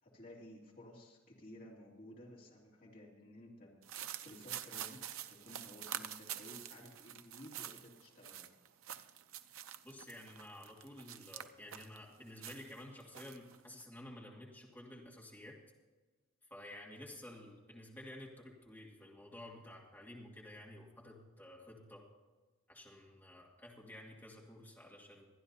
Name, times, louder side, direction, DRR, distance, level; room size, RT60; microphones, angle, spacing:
voice 1, 0.0-3.7 4.2-8.5, left 1 dB, 40° left, -4 dB, 2.9 m, -55 dB
sound 1, 3.8-12.0 12.4-13.8, right 10 dB, 80° right, 0.6 m, -47 dB
voice 2, 9.8-15.6 16.5-22.0 22.7-25.3, left 1 dB, 10° left, -3 dB, 2.2 m, -52 dB
25.0 x 10.0 x 2.8 m, 1.3 s
head